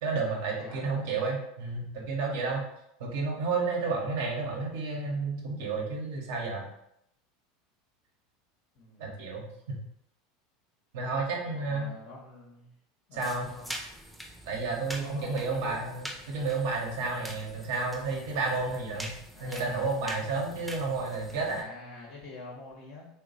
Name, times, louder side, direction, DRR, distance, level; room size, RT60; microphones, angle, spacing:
voice 1, 0.0-2.6 3.0-6.7 9.0-9.8 10.9-11.9 13.1-13.5 14.5-19.1 19.4-21.7, right 3 dB, 70° right, -2 dB, 0.9 m, -31 dB
voice 2, 0.6-1.1 8.7-9.2 11.5-12.7 13.1-13.7 14.9-15.8 19.3-19.9 21.3-23.1, left 2 dB, 60° left, -2 dB, 0.9 m, -46 dB
sound 1, 13.2-21.6, right 1 dB, 5° right, 0.8 m, -44 dB
3.0 x 2.2 x 3.8 m, 0.78 s
hypercardioid pair, 85°, 0 cm